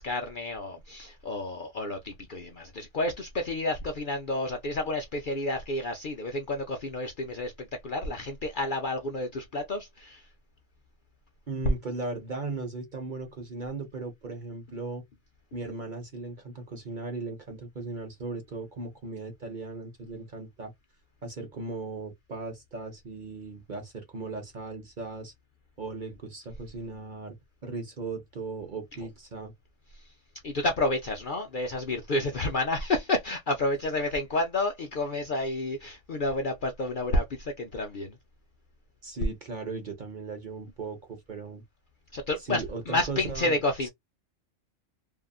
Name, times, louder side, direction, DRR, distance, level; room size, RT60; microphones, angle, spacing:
voice 1, 0.0-10.3 29.9-30.1 30.4-38.2 42.1-43.9, left 2 dB, 55° left, 0.6 m, -30 dB
voice 2, 11.5-15.0 15.5-20.7 21.2-25.3 25.8-27.4 27.6-29.5 39.0-41.6 42.5-43.6, right 3 dB, 45° right, 0.8 m, -37 dB
2.7 x 2.5 x 2.2 m
omnidirectional pair, 1.3 m